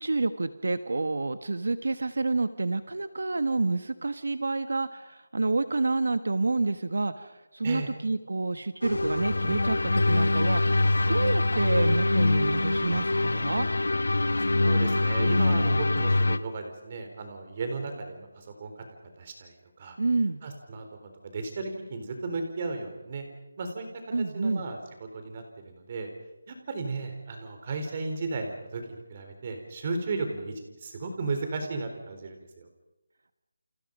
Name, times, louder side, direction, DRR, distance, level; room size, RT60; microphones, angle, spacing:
voice 1, 0.0-13.7 20.0-20.4 24.1-24.6, right 3 dB, 75° right, 11 dB, 1.4 m, -28 dB
sound 1, 8.8-16.4, left 2 dB, 85° left, 1.3 m, -24 dB
voice 2, 14.4-18.8 19.2-20.0 20.4-23.3 23.6-23.9 24.2-26.1 26.5-32.7, right 3 dB, 30° right, 5 dB, 4.1 m, -35 dB
29.5 x 29.5 x 5.4 m, 1.0 s
figure-of-eight pair, 175°, 0 cm